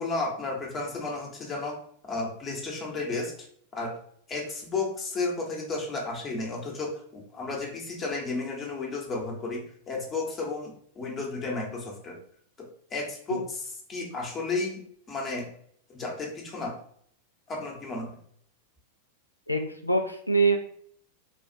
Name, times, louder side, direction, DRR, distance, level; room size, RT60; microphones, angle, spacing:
voice 1, 0.0-1.8 2.0-3.3 3.7-3.9 4.3-12.2 12.6-13.6 13.9-14.8 15.1-15.5 15.9-16.7 17.5-18.2, left 3 dB, 25° left, -1 dB, 1.0 m, -33 dB
voice 2, 19.5-20.6, right 3 dB, 85° left, 5 dB, 0.5 m, -24 dB
4.1 x 2.4 x 2.8 m, 0.62 s
figure-of-eight pair, 90°, 0 cm